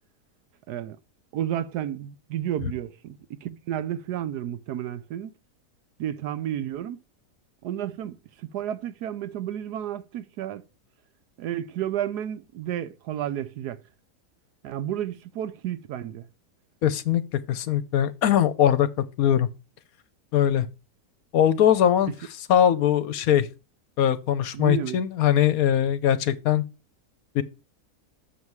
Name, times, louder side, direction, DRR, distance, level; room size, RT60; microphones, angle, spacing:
voice 1, 1.3-5.3 6.0-7.0 7.6-8.2 8.4-10.6 11.4-13.8 14.6-16.2 24.5-25.0, right 11 dB, 80° right, 1.2 m, -31 dB
voice 2, 16.8-18.9 19.2-19.5 20.3-20.7 21.3-22.1 22.5-23.5 24.0-26.6 27.3-27.4, left 10 dB, 70° left, 1.1 m, -21 dB
7.2 x 6.7 x 4.6 m
omnidirectional pair, 1.7 m